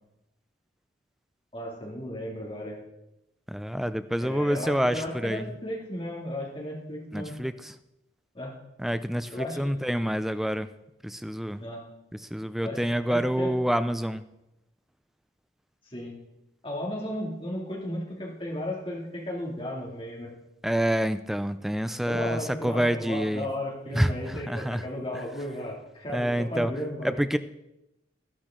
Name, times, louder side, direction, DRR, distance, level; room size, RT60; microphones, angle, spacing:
voice 1, 1.5-2.8 4.2-7.4 8.3-8.5 9.3-9.7 11.6-11.9 12.6-12.8 13.1-13.6 15.9-16.1 16.6-20.3 22.0-27.2, left 1 dB, 30° left, -3 dB, 2.5 m, -35 dB
voice 2, 3.5-5.4 7.1-7.5 8.8-9.3 9.6-10.7 11.0-11.6 12.3-14.2 20.6-23.5 24.0-24.1 24.5-24.8 26.1-26.7 27.0-27.4, equal, ahead, 12 dB, 0.3 m, -27 dB
12.0 x 11.5 x 3.7 m, 0.91 s
head